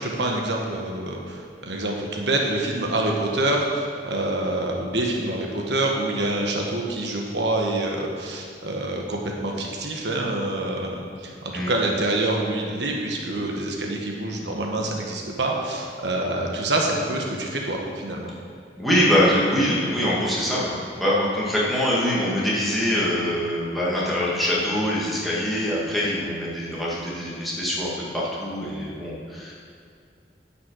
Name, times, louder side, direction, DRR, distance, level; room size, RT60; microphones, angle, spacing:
voice 1, 0.0-18.3, right 2 dB, 85° right, 0 dB, 1.3 m, -26 dB
voice 2, 18.8-29.5, equal, ahead, -8 dB, 2.1 m, -24 dB
9.8 x 5.9 x 6.4 m, 2.4 s
head